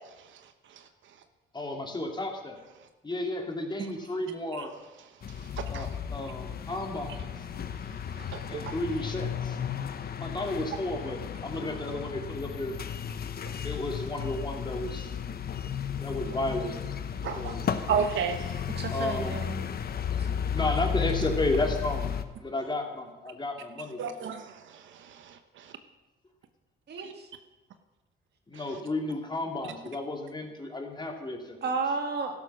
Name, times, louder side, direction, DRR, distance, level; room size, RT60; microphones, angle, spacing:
voice 1, 1.5-2.6 3.0-4.7 5.7-7.2 8.5-9.6 10.2-12.8 13.6-15.2 16.0-16.8 17.3-17.6 18.9-19.3 20.5-22.1 22.4-24.1 28.5-31.6, left 2 dB, 20° left, 2 dB, 2.7 m, -33 dB
sound 1, 5.2-22.2, left 8 dB, 50° left, 1.0 m, -34 dB
voice 2, 8.3-8.6 13.5-13.6 17.2-17.6 17.9-18.6 24.0-25.7 27.0-27.1, right 7 dB, 75° right, 8 dB, 1.0 m, -32 dB
voice 3, 18.8-19.7 26.9-27.3 31.6-32.3, right 4 dB, 55° right, 4 dB, 2.2 m, -32 dB
13.0 x 11.5 x 6.3 m, 1.1 s
cardioid pair, 90°, 20 cm